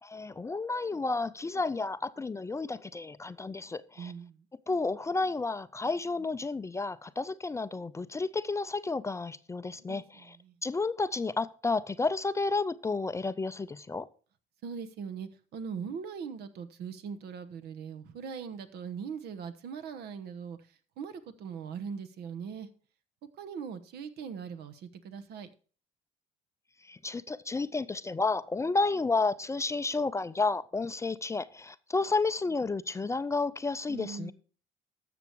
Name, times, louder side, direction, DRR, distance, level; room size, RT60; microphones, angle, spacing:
voice 1, 0.0-4.1 4.7-10.4 10.6-14.1 26.8-34.3, left 3 dB, 15° left, 0.4 m, -31 dB
voice 2, 4.0-4.4 9.6-10.6 14.6-20.6 21.0-22.7 23.4-25.5 33.9-34.3, right 6 dB, 75° right, 1.1 m, -41 dB
13.0 x 6.9 x 4.6 m
cardioid pair, 110°, 17 cm